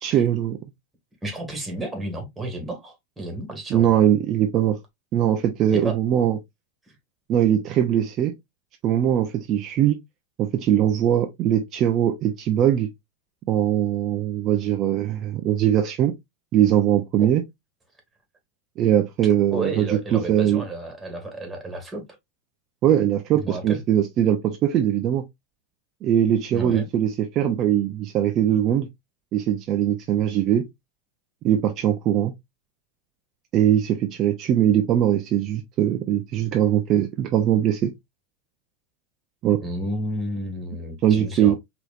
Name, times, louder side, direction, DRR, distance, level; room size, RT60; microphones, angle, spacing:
voice 1, 0.0-0.6 3.7-4.8 5.1-6.4 7.3-8.3 8.8-10.0 10.4-12.9 13.5-16.1 16.5-17.4 18.8-20.6 22.8-25.2 26.0-28.9 29.3-30.6 31.4-32.3 33.5-37.9 39.4-39.6 41.0-41.5, right 10 dB, 40° right, 0.6 m, -21 dB
voice 2, 1.2-3.9 5.7-6.0 6.9-7.0 17.2-17.3 19.5-22.1 23.3-23.8 26.5-26.8 39.6-41.6, right 1 dB, 10° right, 1.9 m, -31 dB
4.8 x 3.0 x 2.5 m
hypercardioid pair, 120°, 0 cm